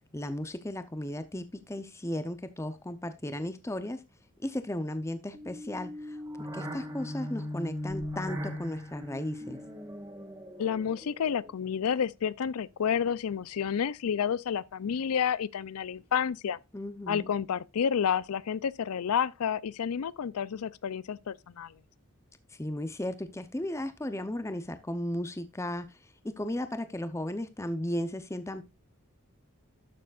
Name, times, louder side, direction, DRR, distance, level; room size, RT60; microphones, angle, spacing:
voice 1, 0.1-4.0 4.4-6.2 6.5-9.6 16.7-17.3 22.6-26.0 26.2-28.6, left 1 dB, 15° left, 0.6 m, -35 dB
sound 1, 5.3-11.7, left 1 dB, 15° right, 1.8 m, -39 dB
voice 2, 10.6-16.6 17.1-21.7, left 7 dB, 80° left, 0.4 m, -30 dB
12.5 x 7.0 x 2.4 m
head